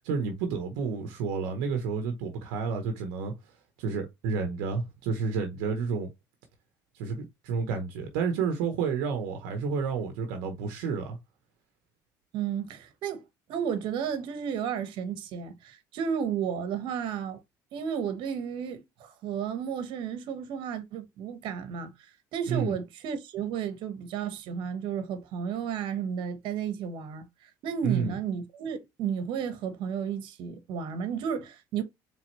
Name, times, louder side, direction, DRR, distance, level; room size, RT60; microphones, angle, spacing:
voice 1, 0.0-3.3 3.8-6.1 6.9-11.2 22.5-22.8 27.8-28.2, right 5 dB, 90° right, 0.9 m, -30 dB
voice 2, 12.3-13.2 13.5-17.4 17.7-31.8, right 7 dB, 70° right, 1.1 m, -33 dB
4.3 x 3.4 x 3.1 m
supercardioid pair, 90°, 9 cm